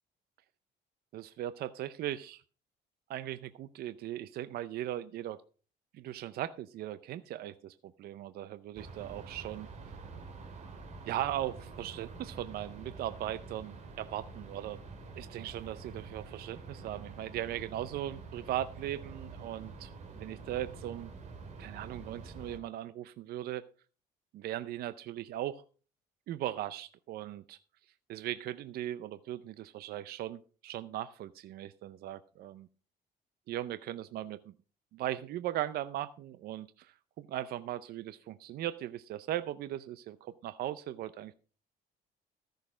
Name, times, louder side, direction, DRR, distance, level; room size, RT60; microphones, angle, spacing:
voice 1, 1.1-2.4 3.1-5.4 5.9-9.7 11.1-14.8 15.2-19.9 20.2-21.1 21.6-23.6 24.3-25.6 26.3-27.6 28.1-32.7 33.5-34.4 34.9-41.3, right 12 dB, 65° right, 13 dB, 0.6 m, -38 dB
sound 1, 8.7-22.6, right 4 dB, 45° right, 2.7 m, -47 dB
14.0 x 6.5 x 5.0 m, 0.39 s
cardioid pair, 110°, 17 cm